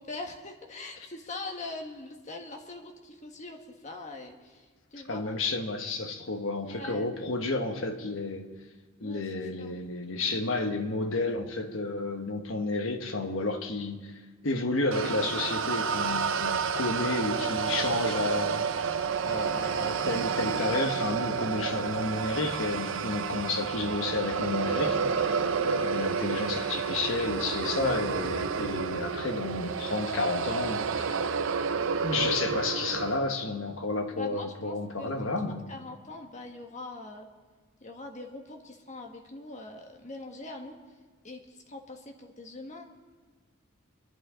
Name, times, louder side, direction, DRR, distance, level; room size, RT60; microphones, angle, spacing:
voice 1, 0.0-5.4 6.6-7.2 9.0-9.2 9.6-9.8 10.1-10.4 34.2-35.3 35.7-37.3 37.8-40.8 41.2-42.8, left 2 dB, 35° left, 1.6 m, -42 dB
voice 2, 5.1-8.5 9.0-14.2 14.4-19.0 19.2-31.2 32.0-35.7, left 2 dB, 70° left, 1.3 m, -31 dB
sound 1, 14.9-33.2, right 6 dB, 70° right, 0.6 m, -30 dB
25.0 x 11.5 x 3.8 m
head